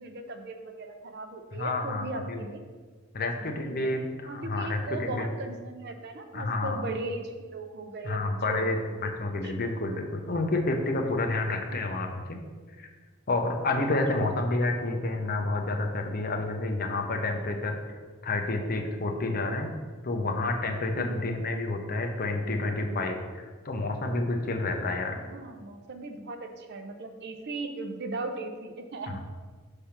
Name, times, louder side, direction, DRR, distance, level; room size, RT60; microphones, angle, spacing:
voice 1, 0.0-2.6 3.2-3.9 4.2-9.1 9.4-9.7 14.2-14.3 21.0-21.3 25.0-29.2, right 2 dB, 50° right, 6 dB, 0.6 m, -38 dB
voice 2, 1.6-2.4 3.1-5.2 6.3-6.8 8.0-12.4 12.8-12.9 13.3-17.8 18.2-19.7 20.0-25.1, left 2 dB, 45° left, 3 dB, 0.7 m, -29 dB
5.8 x 3.4 x 5.7 m, 1.5 s
head